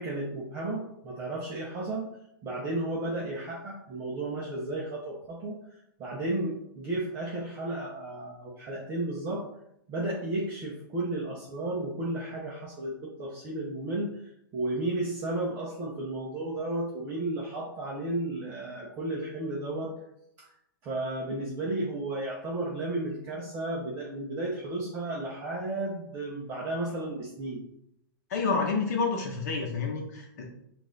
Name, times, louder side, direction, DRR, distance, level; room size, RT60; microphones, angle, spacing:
voice 1, 0.0-2.1 2.4-9.5 9.9-19.9 20.4-20.5 20.8-27.6, right 2 dB, 20° right, -4 dB, 0.7 m, -33 dB
voice 2, 28.3-30.4, left 4 dB, 45° left, -1 dB, 1.0 m, -29 dB
5.3 x 2.5 x 3.8 m, 0.76 s
hypercardioid pair, 165°, 12 cm